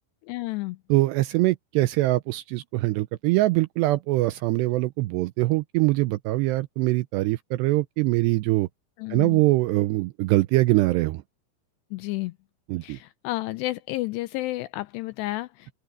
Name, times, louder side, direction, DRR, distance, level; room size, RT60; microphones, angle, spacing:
voice 1, 0.3-0.8 9.0-9.4 11.9-12.3 12.8-15.7, left 19 dB, 85° left, 2.5 m, -31 dB
voice 2, 0.9-8.7 9.1-11.2 12.7-13.0, right 19 dB, 85° right, 2.5 m, -23 dB
open air
omnidirectional pair, 5.4 m